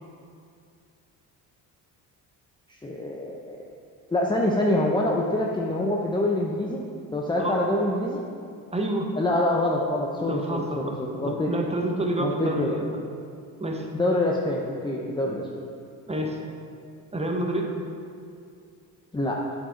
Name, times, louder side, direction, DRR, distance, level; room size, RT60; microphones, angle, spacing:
voice 1, 2.8-3.6 4.1-6.8 7.1-8.2 9.2-11.5 12.2-12.8 13.9-15.5 19.1-19.5, left 1 dB, 10° left, -2 dB, 0.8 m, -25 dB
voice 2, 8.7-9.1 10.3-12.8 13.6-13.9 16.1-16.4 17.1-17.7, right 1 dB, 15° right, 1 dB, 1.2 m, -28 dB
8.8 x 5.1 x 4.5 m, 2.4 s
supercardioid pair, 70°, 41 cm